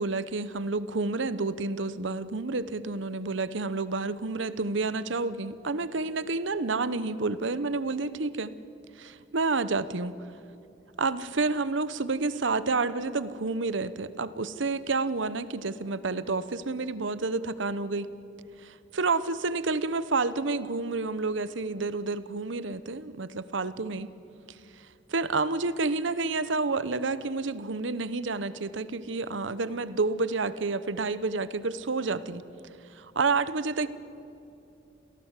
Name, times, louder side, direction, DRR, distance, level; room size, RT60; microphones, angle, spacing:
voice 1, 0.0-8.5 9.0-10.2 11.0-18.1 18.6-24.1 25.1-32.4 32.9-33.9, right 3 dB, 70° right, 15 dB, 0.9 m, -29 dB
27.0 x 17.0 x 8.3 m, 2.7 s
head